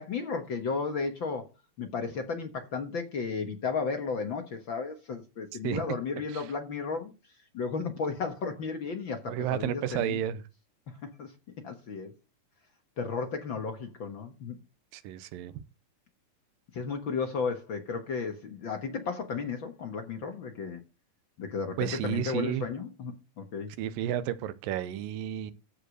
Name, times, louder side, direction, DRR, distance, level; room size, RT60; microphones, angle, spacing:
voice 1, 0.0-1.5 1.8-7.1 7.5-10.2 10.9-11.3 11.6-12.1 13.0-14.6 16.7-20.8 21.4-23.7, left 5 dB, 60° left, 1.3 m, -34 dB
voice 2, 5.6-6.0 6.3-6.5 9.3-10.4 14.9-15.5 21.8-22.7 23.8-25.5, right 11 dB, 80° right, 2.5 m, -32 dB
15.0 x 5.1 x 6.3 m
omnidirectional pair, 4.1 m